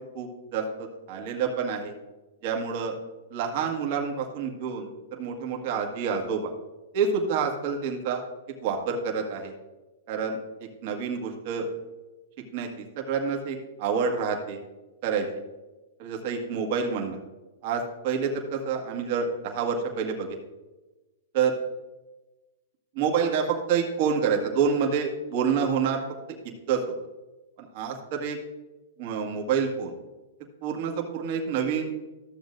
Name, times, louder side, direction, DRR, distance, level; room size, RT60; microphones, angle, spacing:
voice 1, 0.1-1.9 2.4-3.0 3.3-6.4 6.9-8.2 8.6-9.5 10.1-10.4 10.8-11.7 12.5-14.6 15.0-15.3 16.0-17.2 17.6-20.4 21.3-21.5 22.9-26.0 26.7-26.8 27.6-28.4 29.0-29.9 30.6-31.9, right 6 dB, 50° right, 1 dB, 1.6 m, -28 dB
13.5 x 7.1 x 2.6 m, 1.1 s
hypercardioid pair, 140°, 0 cm